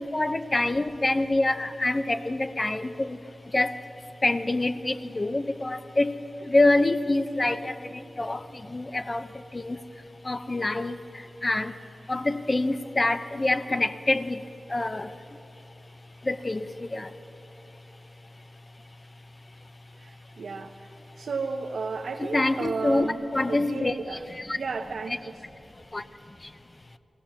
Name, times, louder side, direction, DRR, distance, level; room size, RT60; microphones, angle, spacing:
voice 1, 0.1-3.2 3.5-3.7 4.2-6.2 6.4-7.7 8.2-8.4 8.7-9.3 9.5-9.8 10.2-11.0 11.4-11.7 12.1-14.4 14.7-15.1 16.3-17.1 22.3-24.0 24.4-24.6 25.9-26.0, left 2 dB, 25° left, 10 dB, 0.7 m, -25 dB
voice 2, 20.0-24.3 24.6-25.4, right 4 dB, 85° right, 1 dB, 1.0 m, -34 dB
22.5 x 18.0 x 7.2 m, 3.0 s
wide cardioid pair, 120°, 0 cm